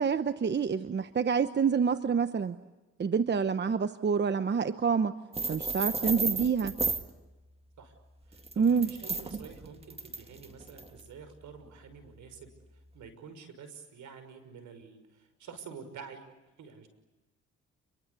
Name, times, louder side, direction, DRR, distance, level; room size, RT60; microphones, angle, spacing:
voice 1, 0.0-2.6 3.0-5.1 5.5-6.7 8.6-8.9, right 6 dB, 35° right, 11 dB, 1.0 m, -27 dB
sound 1, 5.3-7.1 8.3-11.0, right 3 dB, 20° right, 2.0 m, -33 dB
voice 2, 8.3-16.3 16.6-16.9, right 6 dB, 75° right, 10 dB, 5.9 m, -49 dB
30.0 x 23.0 x 8.3 m, 1.1 s
cardioid pair, 90°, 30 cm